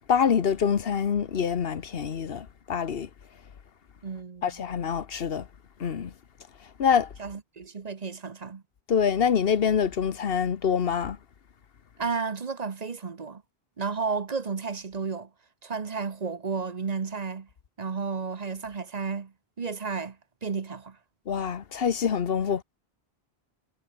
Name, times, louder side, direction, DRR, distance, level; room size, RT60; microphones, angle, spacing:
voice 1, 0.1-3.1 4.4-5.5 5.8-6.1 6.8-7.1 8.9-11.2 21.3-22.6, left 7 dB, 70° left, 1.2 m, -25 dB
voice 2, 4.0-4.7 7.2-8.6 12.0-13.4 13.8-15.3 15.6-17.5 17.8-21.0, right 5 dB, 40° right, 1.0 m, -32 dB
omnidirectional pair, 1.0 m